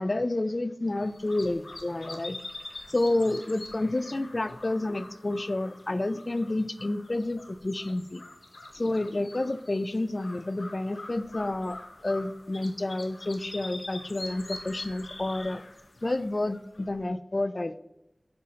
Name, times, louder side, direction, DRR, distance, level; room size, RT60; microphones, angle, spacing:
voice 1, 0.0-2.4 2.9-8.2 8.7-15.6 16.0-17.8, left 2 dB, 50° left, 13 dB, 0.3 m, -30 dB
sound 1, 0.9-17.0, left 2 dB, 85° left, 0.8 m, -45 dB
7.7 x 5.4 x 2.8 m, 0.88 s
wide cardioid pair, 50°, 0 cm